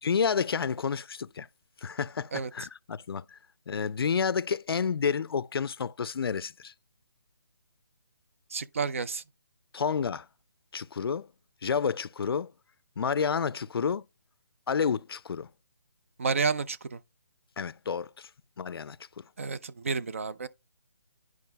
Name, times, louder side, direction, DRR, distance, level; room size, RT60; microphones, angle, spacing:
voice 1, 0.0-1.5 1.8-3.4 3.7-6.7 9.7-10.3 10.7-11.3 11.6-12.5 13.0-14.0 14.7-15.5 17.6-18.3 18.6-19.0, left 6 dB, 80° left, 0.4 m, -30 dB
voice 2, 8.5-9.2 16.2-17.0 19.4-20.5, right 5 dB, 35° right, 0.4 m, -30 dB
11.0 x 4.6 x 2.3 m
hypercardioid pair, 170°, 12 cm